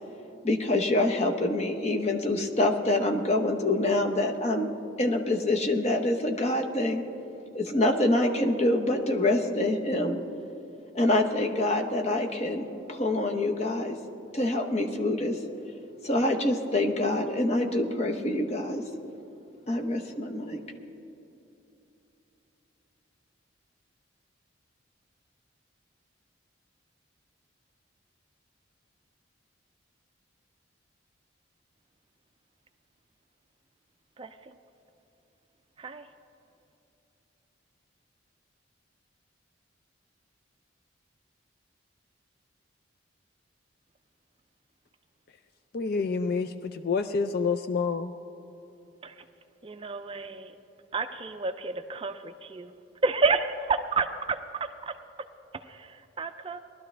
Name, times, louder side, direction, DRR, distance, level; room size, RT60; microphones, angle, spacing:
voice 1, 0.4-4.7 5.0-7.0 7.5-10.2 10.9-14.0 14.3-15.4 16.0-18.8 19.7-20.6, left 1 dB, 35° left, 0.9 m, -26 dB
voice 2, 34.2-34.6 35.8-36.1 49.0-49.2 49.6-50.5 50.9-52.7 53.0-54.9 55.5-56.6, right 4 dB, 25° right, 0.4 m, -30 dB
voice 3, 45.7-48.1, left 4 dB, 50° left, 0.4 m, -28 dB
19.5 x 12.5 x 3.3 m
head